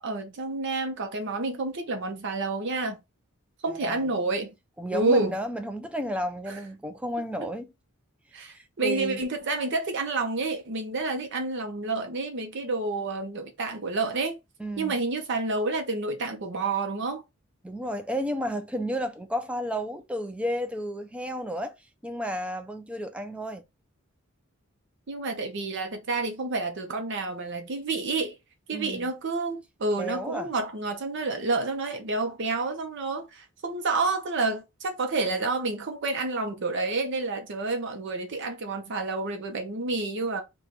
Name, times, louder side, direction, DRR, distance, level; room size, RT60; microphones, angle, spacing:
voice 1, 0.0-3.0 3.6-4.5 4.9-5.4 6.5-6.6 8.3-14.4 14.8-17.2 25.1-28.4 28.7-40.4, right 3 dB, 60° right, 0.7 m, -29 dB
voice 2, 3.7-4.1 4.8-7.7 8.4-9.2 14.6-15.0 17.6-21.7 22.0-23.6 28.7-29.1 30.0-30.5, equal, 5° right, 0.4 m, -32 dB
3.0 x 2.2 x 3.9 m
head